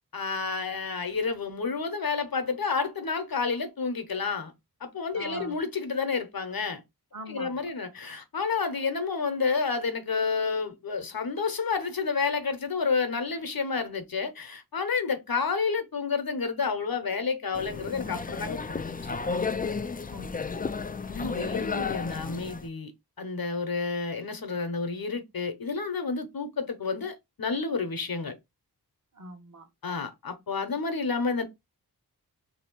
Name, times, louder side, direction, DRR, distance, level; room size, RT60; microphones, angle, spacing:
voice 1, 0.1-4.5 4.8-6.8 7.3-19.2 21.1-22.9 23.2-28.3 29.8-31.4, left 5 dB, 60° left, 0.9 m, -30 dB
voice 2, 5.1-5.6 7.1-7.7 20.1-20.8 29.1-29.7, right 1 dB, 45° right, 1.1 m, -43 dB
sound 1, 17.5-22.7, left 5 dB, 25° left, 0.3 m, -33 dB
3.0 x 2.8 x 4.5 m
wide cardioid pair, 65°, 40 cm